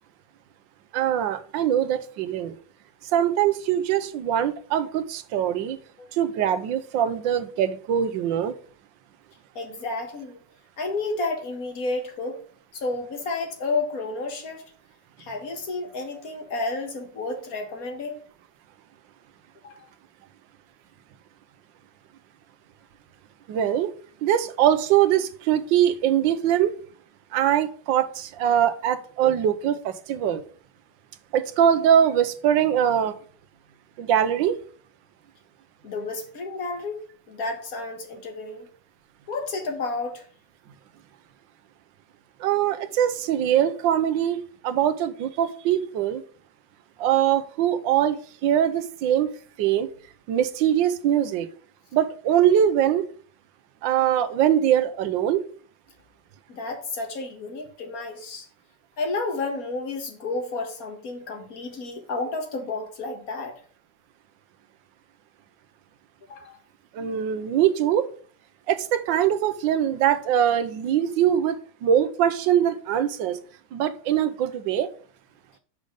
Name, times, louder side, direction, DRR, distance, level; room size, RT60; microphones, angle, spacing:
voice 1, 0.9-2.5 3.1-5.8 6.1-8.5 23.5-23.9 24.2-26.7 27.3-30.4 31.3-33.1 34.0-34.6 42.4-44.4 44.6-46.2 47.0-49.3 49.6-49.9 50.3-51.5 51.9-53.1 53.8-55.4 66.9-68.1 68.7-73.4 73.7-74.9, right 10 dB, 80° right, 1.4 m, -22 dB
voice 2, 9.6-10.4 10.8-12.4 12.7-14.7 15.2-18.2 19.6-19.8 35.8-38.7 39.3-40.3 56.5-58.5 59.0-63.6 66.3-66.6, left 3 dB, 50° left, 1.9 m, -31 dB
6.3 x 5.1 x 5.3 m
omnidirectional pair, 2.0 m